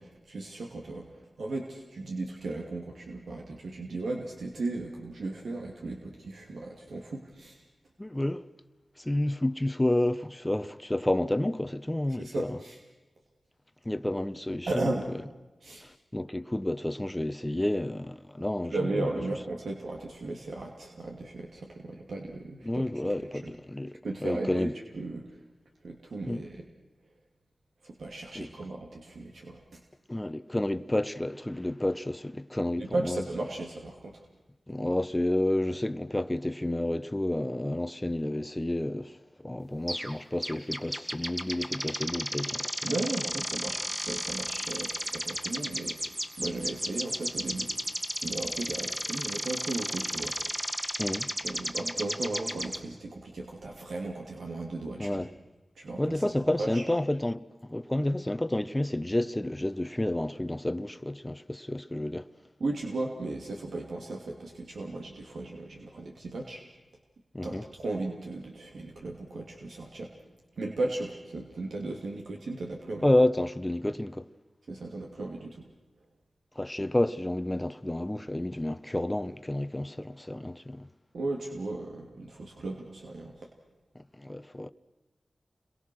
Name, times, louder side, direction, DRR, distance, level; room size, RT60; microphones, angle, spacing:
voice 1, 0.0-7.6 12.2-12.8 14.7-15.1 15.6-15.8 18.7-23.5 24.0-25.4 25.8-26.6 27.8-29.8 32.8-34.3 42.8-47.7 48.1-50.4 51.4-55.3 55.8-56.8 62.6-66.6 67.4-70.1 70.6-73.1 74.7-75.7 81.1-83.5, right 2 dB, 90° right, 2.7 m, -36 dB
voice 2, 8.0-8.5 9.0-12.6 13.8-14.9 15.8-19.1 22.6-24.7 26.2-26.4 28.3-28.5 30.1-33.2 34.7-42.9 51.0-51.3 55.0-55.3 56.0-62.3 67.3-67.6 73.0-74.3 76.6-80.9 83.9-84.7, left 1 dB, 15° left, 0.9 m, -30 dB
sound 1, 39.9-40.1 40.4-52.8, equal, 15° right, 2.1 m, -34 dB
29.5 x 22.5 x 6.3 m
wide cardioid pair, 60°, 0 cm